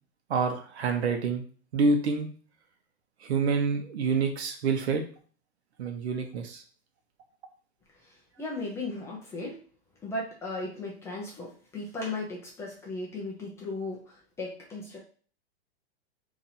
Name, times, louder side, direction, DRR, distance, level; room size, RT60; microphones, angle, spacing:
voice 1, 0.3-1.4 1.7-2.3 3.2-5.0 5.8-6.6, right 4 dB, 80° right, 5 dB, 0.9 m, -27 dB
voice 2, 8.4-9.6 10.0-15.0, left 2 dB, 10° left, -3 dB, 0.4 m, -36 dB
2.9 x 2.6 x 4.1 m, 0.42 s
hypercardioid pair, 150°, 32 cm